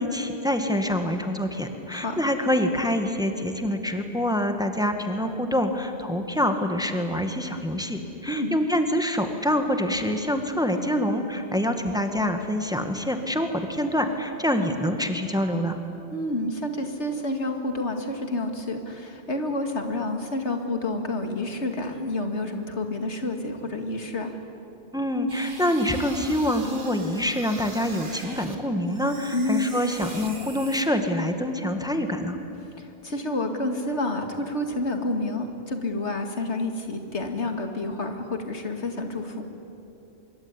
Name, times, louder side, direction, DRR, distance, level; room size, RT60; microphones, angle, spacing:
voice 1, 0.0-15.8 24.9-32.4, left 1 dB, 5° right, 6 dB, 1.8 m, -26 dB
voice 2, 1.9-2.2 8.3-8.6 16.1-24.4 29.3-29.8 32.8-39.4, left 2 dB, 85° left, 5 dB, 2.6 m, -29 dB
sound 1, 25.3-28.6 28.9-30.8, right 2 dB, 50° right, 2.3 m, -42 dB
25.0 x 23.5 x 9.9 m, 2.9 s
omnidirectional pair, 1.1 m